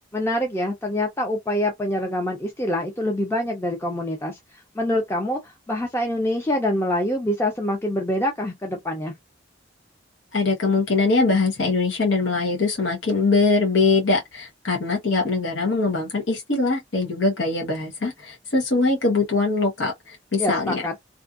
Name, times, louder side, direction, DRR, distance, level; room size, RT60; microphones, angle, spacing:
voice 1, 0.1-9.1 20.4-20.9, left 1 dB, 15° left, 0.5 m, -25 dB
voice 2, 10.3-20.8, left 3 dB, 80° left, 1.0 m, -22 dB
2.6 x 2.4 x 2.4 m
head